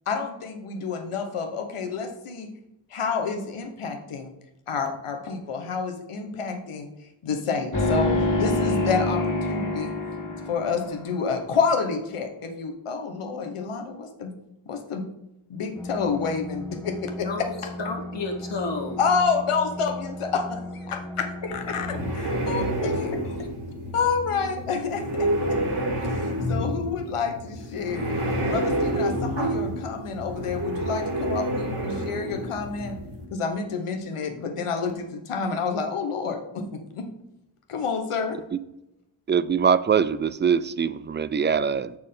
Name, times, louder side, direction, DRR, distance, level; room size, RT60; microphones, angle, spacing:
voice 1, 0.1-2.5 2.9-4.3 4.7-6.9 7.2-9.9 10.5-14.3 14.7-15.0 15.5-17.3 17.6-17.7 19.0-20.6 20.9-21.3 21.7-21.9 22.2-23.1 23.9-28.1 28.5-33.0 33.3-37.1 37.7-38.4, left 5 dB, 90° left, 1.2 m, -29 dB
sound 1, 7.7-11.2, left 2 dB, 40° left, 2.0 m, -25 dB
sound 2, 15.7-22.1, left 1 dB, 5° left, 1.2 m, -37 dB
voice 2, 17.2-19.0 21.7-21.8 22.8-23.2, left 3 dB, 60° left, 1.7 m, -32 dB
sound 3, 21.5-33.2, right 1 dB, 50° right, 2.6 m, -28 dB
voice 3, 39.3-42.0, right 7 dB, 25° right, 0.3 m, -23 dB
6.6 x 6.1 x 3.7 m
cardioid pair, 65°, 49 cm